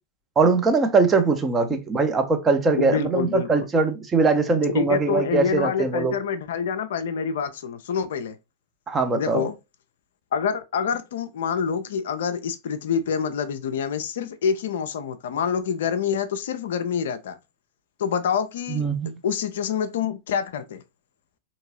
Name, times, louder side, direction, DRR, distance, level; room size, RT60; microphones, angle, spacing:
voice 1, 0.4-6.2 8.9-9.4 18.7-19.1, right 4 dB, 20° right, 0.7 m, -21 dB
voice 2, 2.8-3.7 4.7-8.4 9.1-9.6 10.3-17.4 18.0-18.8 19.2-20.8, left 7 dB, 60° left, 0.4 m, -26 dB
3.6 x 2.9 x 2.8 m
figure-of-eight pair, 90°, 0 cm